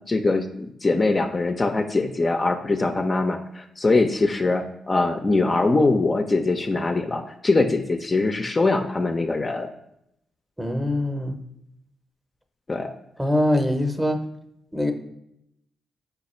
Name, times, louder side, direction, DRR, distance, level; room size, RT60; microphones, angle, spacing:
voice 1, 0.1-9.7 12.7-12.9, left 3 dB, 35° left, 5 dB, 0.4 m, -22 dB
voice 2, 10.6-11.4 13.2-14.2 14.7-14.9, left 1 dB, 10° right, 6 dB, 0.6 m, -23 dB
4.7 x 2.3 x 4.3 m, 0.79 s
supercardioid pair, 55°, 0 cm